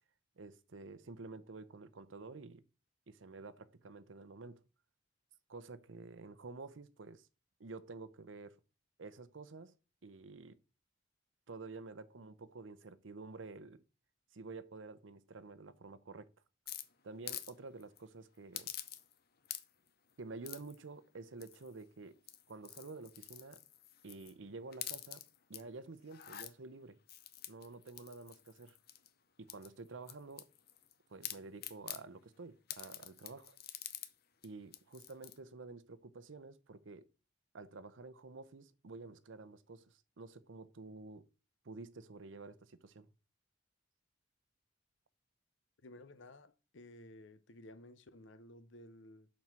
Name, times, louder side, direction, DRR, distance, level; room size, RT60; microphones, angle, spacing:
voice 1, 0.4-2.6 3.1-4.6 5.5-7.3 7.6-8.6 9.0-9.8 10.0-10.6 11.5-13.8 14.3-16.3 17.0-18.7 20.2-22.2 22.5-23.6 24.0-25.2 25.5-27.0 27.5-28.8 29.4-30.5 31.1-33.6 34.4-37.1 37.5-41.3 41.6-43.1, right 3 dB, 90° right, 0.7 m, -50 dB
sound 1, 16.7-17.5 17.8-18.0 18.5-19.2 19.4-19.9 20.4-20.8 21.4-21.8 22.2-24.3 24.7-25.6 26.0-26.5 27.1-29.1 29.5-30.9 31.2-32.0 32.7-34.1 34.4-34.5 34.7-35.4, left 12 dB, 55° left, 0.7 m, -47 dB
voice 2, 45.8-49.3, left 1 dB, 80° left, 0.8 m, -55 dB
7.5 x 4.3 x 6.0 m
head